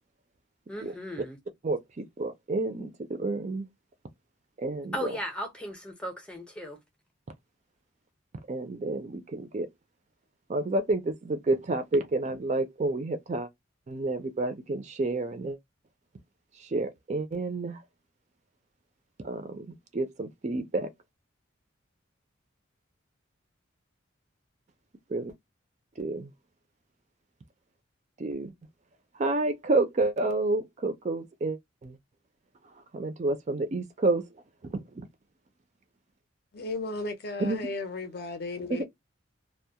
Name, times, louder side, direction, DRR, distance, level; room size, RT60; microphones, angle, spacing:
voice 1, 0.7-1.4 4.9-6.8, equal, 5° left, 0.6 m, -36 dB
voice 2, 1.6-3.7 4.6-5.1 8.5-9.7 10.5-13.5 13.9-15.6 16.6-17.8 19.2-19.7 19.9-20.9 25.1-25.3 26.0-26.3 28.2-28.5 29.2-32.0 32.9-34.2 34.7-35.1 37.4-37.6 38.7-38.8, right 2 dB, 35° right, 0.4 m, -29 dB
voice 3, 36.5-38.8, left 2 dB, 50° left, 0.6 m, -35 dB
2.2 x 2.0 x 2.7 m
head